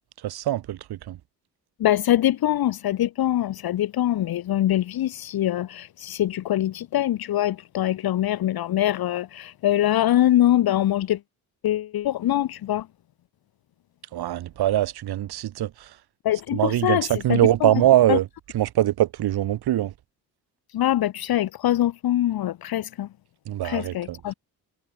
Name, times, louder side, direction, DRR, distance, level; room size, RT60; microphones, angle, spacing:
voice 1, 0.2-1.2 14.1-15.7 16.5-18.2 18.5-19.9 23.5-24.2, right 13 dB, 70° right, 1.3 m, -22 dB
voice 2, 1.8-11.2 11.6-12.9 16.2-18.2 20.7-23.1 23.6-24.3, left 13 dB, 65° left, 1.1 m, -23 dB
cardioid pair, 125°, 40 cm